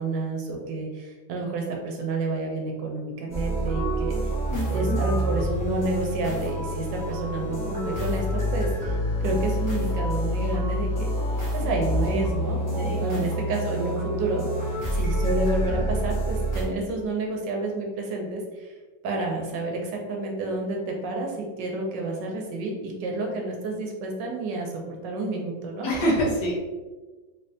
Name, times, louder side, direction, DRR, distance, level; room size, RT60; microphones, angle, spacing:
voice 1, 0.0-4.3 4.7-11.1 11.5-18.7 19.0-25.9, right 2 dB, 75° right, 1 dB, 1.3 m, -30 dB
sound 1, 3.3-16.6, equal, 15° left, 0.7 m, -27 dB
voice 2, 4.5-5.0 12.8-13.0 25.8-26.5, equal, 65° left, -4 dB, 1.5 m, -26 dB
3.8 x 3.2 x 2.7 m, 1.3 s
omnidirectional pair, 2.0 m